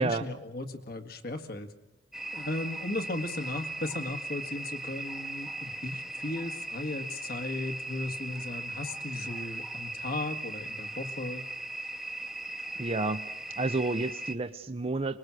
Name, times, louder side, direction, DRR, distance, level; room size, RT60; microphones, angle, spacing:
voice 1, 0.0-1.7 2.3-11.4, left 2 dB, 55° left, 7 dB, 1.8 m, -36 dB
sound 1, 2.1-14.4, right 1 dB, ahead, 1.0 m, -38 dB
voice 2, 12.8-13.2 13.6-15.2, right 3 dB, 35° right, 9 dB, 0.7 m, -30 dB
25.0 x 21.0 x 6.3 m, 0.95 s
head